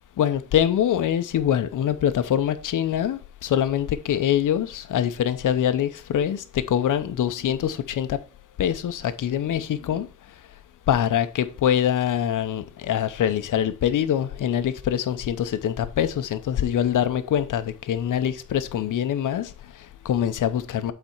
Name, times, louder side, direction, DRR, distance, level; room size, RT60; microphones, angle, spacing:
voice 1, 0.2-8.2 8.6-10.1 10.9-20.9, left 10 dB, 85° left, 0.8 m, -24 dB
8.0 x 4.3 x 4.5 m
wide cardioid pair, 160°, 31 cm